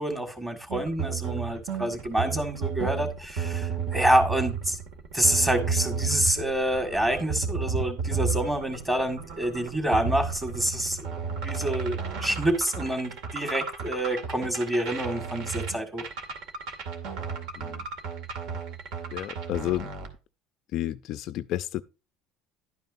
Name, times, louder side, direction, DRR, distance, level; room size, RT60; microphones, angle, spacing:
voice 1, 0.0-4.8 5.1-11.1 11.4-16.0, right 1 dB, 10° right, 1.9 m, -27 dB
sound 1, 0.7-20.1, right 5 dB, 55° right, 2.2 m, -33 dB
voice 2, 19.1-19.9 20.7-21.8, left 13 dB, 50° left, 0.4 m, -31 dB
11.5 x 9.2 x 2.6 m
cardioid pair, 165°, 0 cm